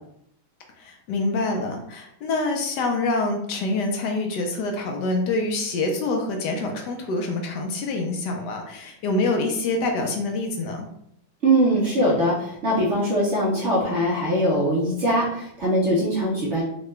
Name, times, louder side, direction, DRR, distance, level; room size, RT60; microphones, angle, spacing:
voice 1, 0.8-10.9, left 2 dB, 75° left, 3 dB, 1.0 m, -26 dB
voice 2, 11.4-16.6, right 1 dB, 65° right, -5 dB, 0.7 m, -22 dB
3.7 x 2.2 x 3.1 m, 0.72 s
omnidirectional pair, 2.2 m